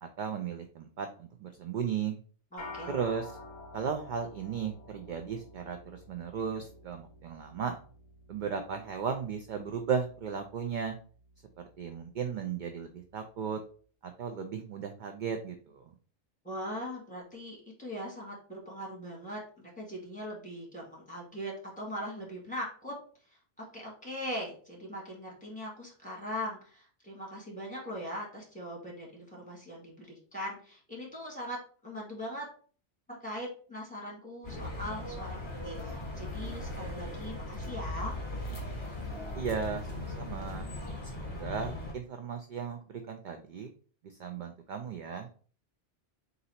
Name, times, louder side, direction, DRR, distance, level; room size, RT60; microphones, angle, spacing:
voice 1, 0.0-2.2 2.9-3.3 3.7-7.8 8.3-11.0 11.8-13.6 14.0-15.8 39.3-40.7 41.1-43.7 44.0-45.3, right 6 dB, 60° right, 6 dB, 0.5 m, -36 dB
voice 2, 2.5-2.9 16.4-22.9 23.6-32.5 33.1-35.4 35.6-38.2, equal, 5° left, -3 dB, 1.6 m, -40 dB
sound 1, 2.6-12.1, left 2 dB, 45° left, 0.8 m, -50 dB
sound 2, 34.4-41.9, left 1 dB, 25° left, 1.1 m, -38 dB
3.9 x 2.7 x 4.2 m, 0.42 s
omnidirectional pair, 1.2 m